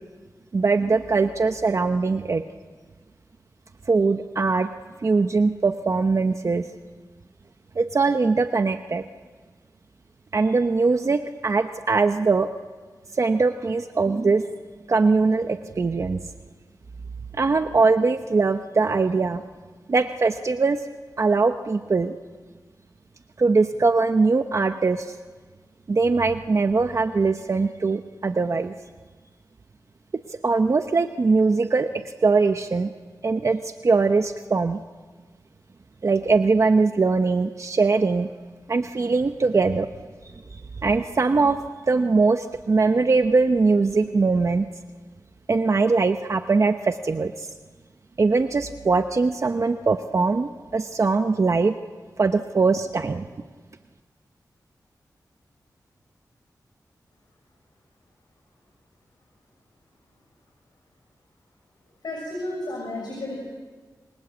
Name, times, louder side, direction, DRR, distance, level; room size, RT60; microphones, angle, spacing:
voice 1, 0.5-2.4 3.9-4.7 5.0-6.6 7.8-9.0 10.3-12.5 13.1-14.4 14.9-16.2 17.4-19.4 19.9-20.8 21.2-22.1 23.4-25.1 25.9-28.7 30.4-31.9 32.2-32.9 33.2-34.8 36.0-38.3 38.7-39.9 40.8-44.7 45.5-47.5 48.2-51.8 52.2-53.2, right 4 dB, 45° right, 7 dB, 0.9 m, -21 dB
voice 2, 62.0-63.4, left 1 dB, 90° left, -1 dB, 6.5 m, -32 dB
28.0 x 24.5 x 8.1 m, 1.5 s
wide cardioid pair, 95°, 7 cm